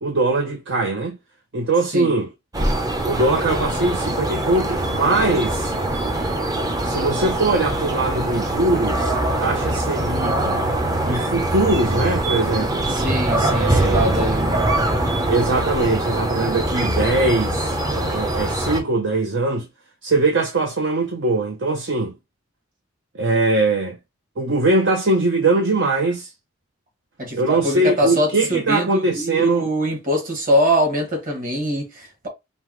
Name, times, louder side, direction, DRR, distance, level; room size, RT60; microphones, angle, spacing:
voice 1, 0.0-1.2 1.5-2.3 3.0-5.7 6.8-10.6 11.1-12.8 13.5-14.3 15.3-19.7 20.0-22.1 23.1-24.0 24.4-26.3 27.3-29.7, right 2 dB, 60° right, 0.7 m, -21 dB
sound 1, 2.5-18.8, right 1 dB, 15° right, 0.6 m, -23 dB
voice 2, 12.9-14.6 27.2-32.3, equal, 40° right, 1.9 m, -23 dB
5.4 x 2.4 x 3.1 m
head